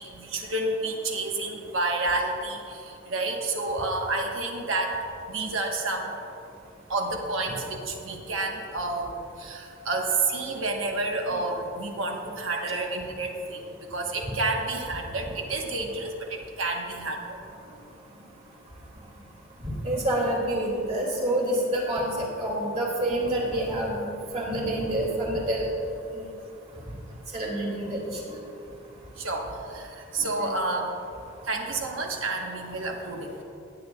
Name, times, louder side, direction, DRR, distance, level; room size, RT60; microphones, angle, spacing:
voice 1, 0.0-2.8 3.1-4.9 5.3-6.1 6.9-13.6 13.9-17.4 29.2-29.5 29.7-29.9 30.1-30.9 31.5-33.4, right 2 dB, 70° right, 1 dB, 1.1 m, -29 dB
voice 2, 19.6-25.7 26.1-26.2 27.3-28.3 30.2-30.5, right 1 dB, 30° right, -3 dB, 2.2 m, -28 dB
18.0 x 8.8 x 2.3 m, 2.7 s
head